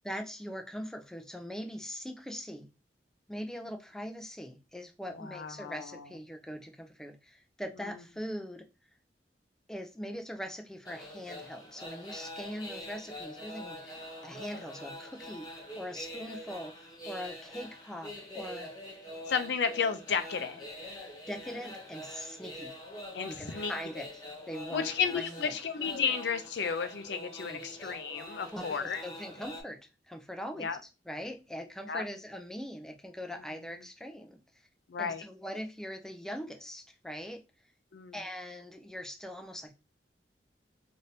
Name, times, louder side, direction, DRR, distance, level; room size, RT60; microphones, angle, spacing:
voice 1, 0.0-2.7 3.3-8.7 9.7-18.7 21.3-22.8 23.3-25.6 27.5-27.9 28.5-29.8 30.1-30.8 31.1-34.4 35.0-37.4 38.1-39.7, equal, 5° left, 0.4 m, -41 dB
voice 2, 5.1-6.0 19.3-20.6 23.1-23.7 24.7-29.0 30.6-30.8 31.9-32.0 34.9-35.2 37.9-38.2, left 6 dB, 70° left, 0.5 m, -33 dB
sound 1, 10.8-29.6, left 1 dB, 25° left, 0.9 m, -44 dB
3.3 x 2.6 x 2.7 m
head